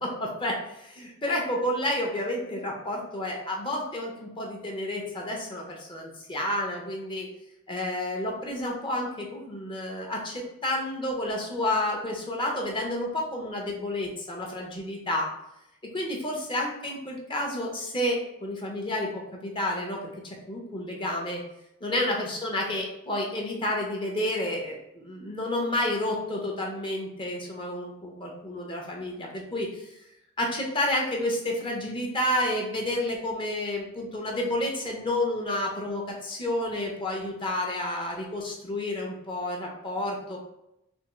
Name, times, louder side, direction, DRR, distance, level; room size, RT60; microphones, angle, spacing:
voice 1, 0.0-7.3 7.7-15.3 15.9-20.0 20.2-21.4 21.8-29.9 30.4-40.4, left 1 dB, 25° left, 0 dB, 0.6 m, -30 dB
3.5 x 2.8 x 3.0 m, 0.82 s
head